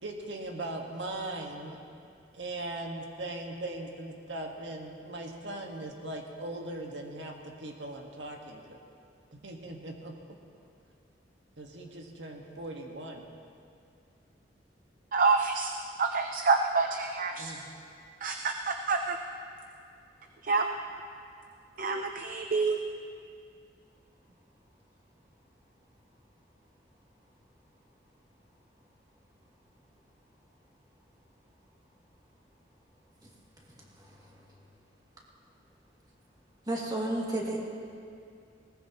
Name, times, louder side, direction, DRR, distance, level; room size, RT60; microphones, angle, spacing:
voice 1, 0.0-1.8 2.3-8.8 9.3-10.4 11.6-13.2 17.3-17.7, right 2 dB, 90° right, 1 dB, 1.6 m, -39 dB
voice 2, 15.1-15.7 16.0-17.5 18.2-19.2 20.5-20.7 21.8-22.8, right 4 dB, 50° right, 5 dB, 0.6 m, -27 dB
voice 3, 33.8-34.3 36.7-37.6, right 1 dB, 25° right, -3 dB, 2.4 m, -33 dB
20.0 x 19.0 x 3.0 m, 2.4 s
head